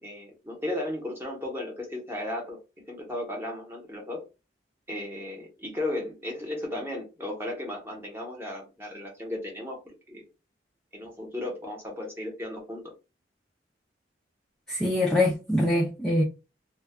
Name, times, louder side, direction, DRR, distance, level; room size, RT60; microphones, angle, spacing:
voice 1, 0.0-2.6 2.9-4.2 4.9-9.8 10.1-10.2 10.9-12.9, left 1 dB, 15° right, 0.8 m, -35 dB
voice 2, 14.7-16.2, left 1 dB, 5° left, 0.3 m, -24 dB
2.2 x 2.1 x 3.4 m
head